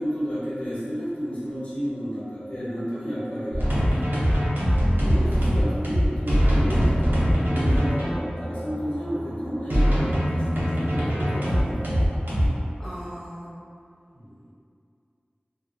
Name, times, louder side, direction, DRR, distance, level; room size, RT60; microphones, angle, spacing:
voice 1, 0.0-4.6 4.9-7.2 7.5-12.5 14.1-14.4, equal, 40° left, -10 dB, 0.9 m, -32 dB
sound 1, 3.5-12.5, equal, 75° right, 0.6 m, -22 dB
voice 2, 5.0-5.6 12.8-13.6, equal, 5° left, -10 dB, 0.7 m, -38 dB
2.4 x 2.0 x 2.6 m, 2.4 s
wide cardioid pair, 45°, 4 cm